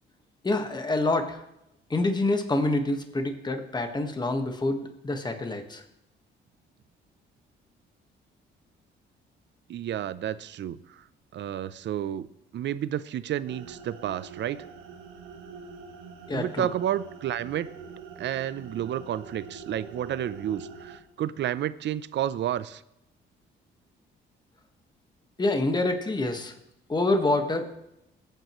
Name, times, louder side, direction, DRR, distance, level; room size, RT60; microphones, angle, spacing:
voice 1, 0.4-1.4 1.9-5.8 16.3-16.7 25.4-26.5 26.9-27.7, left 2 dB, 20° left, 6 dB, 1.5 m, -27 dB
voice 2, 9.7-10.8 11.3-12.3 12.5-14.6 16.3-17.7 18.2-22.8, right 11 dB, 65° right, 16 dB, 0.6 m, -31 dB
sound 1, 13.5-21.0, right 5 dB, 90° right, 1.4 m, -44 dB
21.5 x 9.2 x 3.1 m, 0.83 s
cardioid pair, 90°, 20 cm